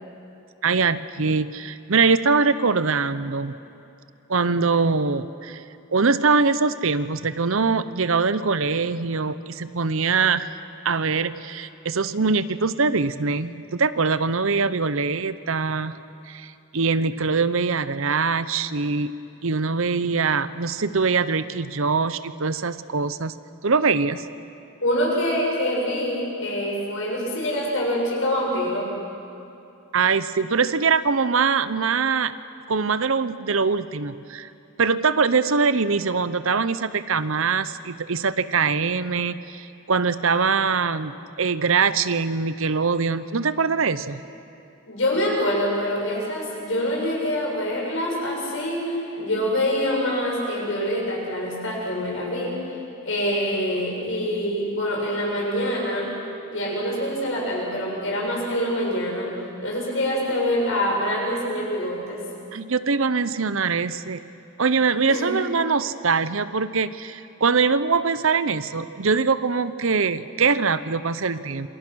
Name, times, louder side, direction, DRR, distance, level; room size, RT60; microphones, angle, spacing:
voice 1, 0.6-3.5 4.3-5.6 5.9-10.5 10.8-16.0 16.3-19.2 19.4-23.4 23.6-24.3 29.9-32.3 32.7-34.5 34.8-44.2 62.5-64.2 64.6-71.7, right 4 dB, 65° right, 14 dB, 0.8 m, -23 dB
voice 2, 24.8-28.9 44.9-56.1 56.5-62.2 65.1-65.3, equal, 60° left, -2 dB, 7.5 m, -25 dB
27.5 x 25.5 x 6.4 m, 2.8 s
head